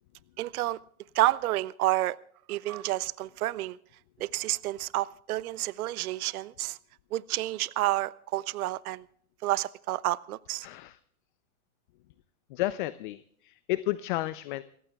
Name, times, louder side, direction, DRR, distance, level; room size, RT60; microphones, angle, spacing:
voice 1, 0.4-0.8 1.1-2.2 2.5-3.8 4.2-6.8 7.1-9.0 9.4-10.7, right 16 dB, 75° right, 20 dB, 0.6 m, -29 dB
voice 2, 10.6-11.0 12.5-14.6, left 17 dB, 35° left, 15 dB, 0.5 m, -32 dB
28.0 x 15.0 x 2.3 m, 0.63 s
hypercardioid pair, 145°, 44 cm